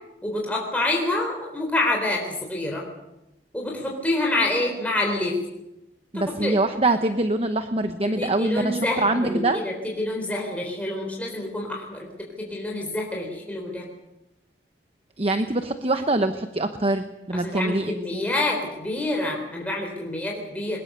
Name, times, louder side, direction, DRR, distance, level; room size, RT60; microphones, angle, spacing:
voice 1, 0.2-2.8 3.5-5.4 6.1-6.6 8.2-13.9 17.3-20.8, left 2 dB, 10° left, -1 dB, 4.0 m, -27 dB
voice 2, 6.1-9.6 15.2-18.2, right 2 dB, 35° right, 8 dB, 1.0 m, -24 dB
22.5 x 21.0 x 6.8 m, 0.92 s
head